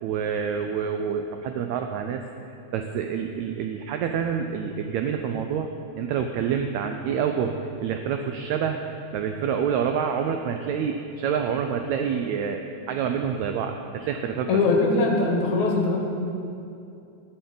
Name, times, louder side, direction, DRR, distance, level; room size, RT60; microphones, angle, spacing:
voice 1, 0.0-2.2 2.7-14.5, right 7 dB, 85° right, 5 dB, 1.6 m, -27 dB
voice 2, 14.5-16.0, left 3 dB, 70° left, 0 dB, 2.6 m, -21 dB
12.5 x 10.0 x 3.9 m, 2.6 s
omnidirectional pair, 3.7 m